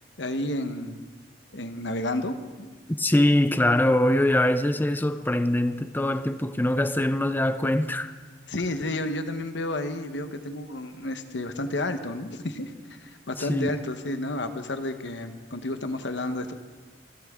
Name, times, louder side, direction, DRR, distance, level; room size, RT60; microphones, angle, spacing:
voice 1, 0.2-1.0 1.5-2.8 8.5-16.5, left 1 dB, 70° left, 1.1 m, -31 dB
voice 2, 3.0-8.1 13.4-13.7, left 1 dB, 10° left, 0.6 m, -23 dB
27.5 x 12.5 x 3.7 m
head